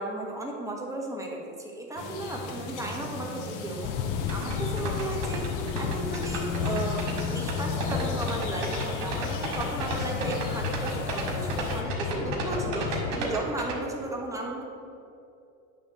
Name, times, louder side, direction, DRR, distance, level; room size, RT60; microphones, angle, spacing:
voice 1, 0.0-3.9 4.3-5.5 5.8-14.6, right 2 dB, 10° right, -1 dB, 1.5 m, -35 dB
sound 1, 2.0-11.8, left 4 dB, 55° left, 1.3 m, -37 dB
sound 2, 3.8-13.2, left 9 dB, 80° left, 0.5 m, -33 dB
sound 3, 4.3-13.7, right 3 dB, 80° right, 1.9 m, -33 dB
9.6 x 3.5 x 6.4 m, 2.6 s
supercardioid pair, 95°, 37 cm